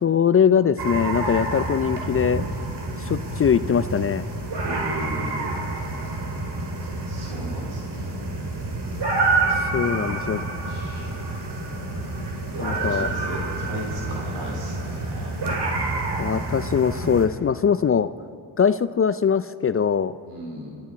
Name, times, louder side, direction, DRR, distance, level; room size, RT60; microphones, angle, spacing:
voice 1, 0.0-2.4 3.0-4.3 9.6-10.5 12.6-13.1 16.2-18.1 18.6-20.2, left 7 dB, 30° left, 14 dB, 0.4 m, -21 dB
sound 1, 0.8-17.3, right 2 dB, 55° right, 2.7 m, -28 dB
voice 2, 4.6-5.5 7.1-8.5 9.8-10.1 10.4-11.4 11.6-11.9 12.5-15.5 20.2-20.8, right 1 dB, 85° right, -2 dB, 3.4 m, -37 dB
27.5 x 9.8 x 4.1 m, 2.5 s
supercardioid pair, 50°, 48 cm